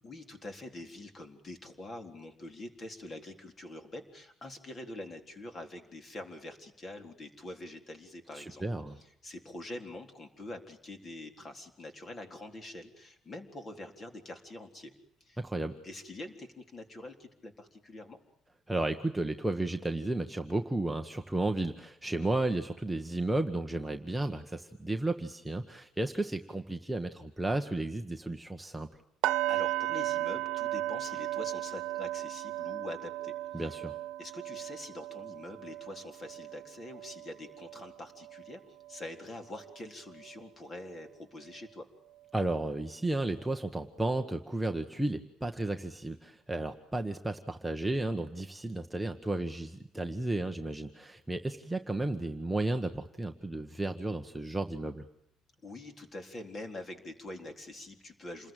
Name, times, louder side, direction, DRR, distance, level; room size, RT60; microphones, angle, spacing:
voice 1, 0.0-8.7 9.0-14.9 15.2-15.4 15.8-18.2 29.5-33.6 34.2-38.6 38.9-41.9 55.6-58.5, left 1 dB, 25° left, 6 dB, 3.9 m, -45 dB
voice 2, 8.3-9.0 15.4-15.8 18.7-28.9 33.5-34.0 42.3-55.0, right 2 dB, 5° right, 4 dB, 1.3 m, -33 dB
sound 1, 29.2-39.2 39.5-39.8 40.2-40.3, right 15 dB, 85° right, 1.2 m, -36 dB
28.5 x 21.0 x 9.1 m, 0.75 s
cardioid pair, 155°, 0 cm